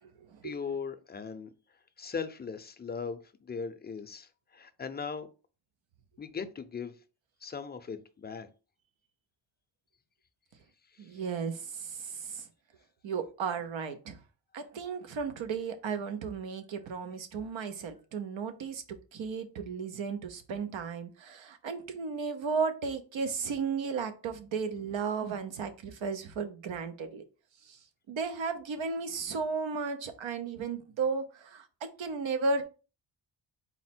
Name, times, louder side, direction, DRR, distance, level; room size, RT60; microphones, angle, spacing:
voice 1, 0.4-1.5 2.0-5.3 6.2-7.0 7.4-8.5 10.9-11.1, left 5 dB, 25° left, 0.4 m, -39 dB
voice 2, 11.0-12.5 13.0-14.2 14.5-18.8 19.1-27.2 27.6-27.8 28.1-32.6, right 5 dB, 85° right, 0.8 m, -34 dB
4.2 x 2.1 x 4.2 m
wide cardioid pair, 105°, 45 cm